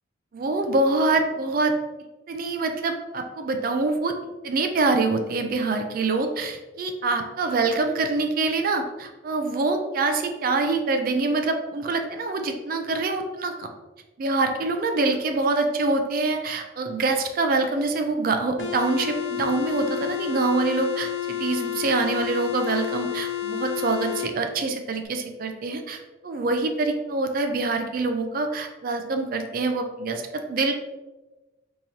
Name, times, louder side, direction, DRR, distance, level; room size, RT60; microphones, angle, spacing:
voice 1, 0.3-1.7 2.3-4.1 4.4-13.7 14.2-30.2 30.5-30.7, right 3 dB, 45° right, 5 dB, 0.4 m, -25 dB
sound 1, 18.6-24.3, left 12 dB, 70° left, 0.4 m, -30 dB
3.8 x 2.9 x 2.8 m, 1.1 s
head